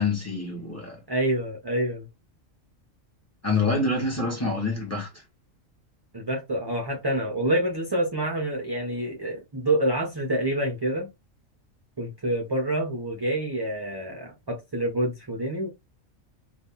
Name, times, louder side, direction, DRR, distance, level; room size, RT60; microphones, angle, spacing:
voice 1, 0.0-1.0 3.4-5.1, left 3 dB, 10° left, 1.2 m, -26 dB
voice 2, 1.1-2.1 6.1-11.1 12.0-15.7, right 1 dB, 30° right, 0.4 m, -27 dB
2.7 x 2.5 x 3.6 m
omnidirectional pair, 1.3 m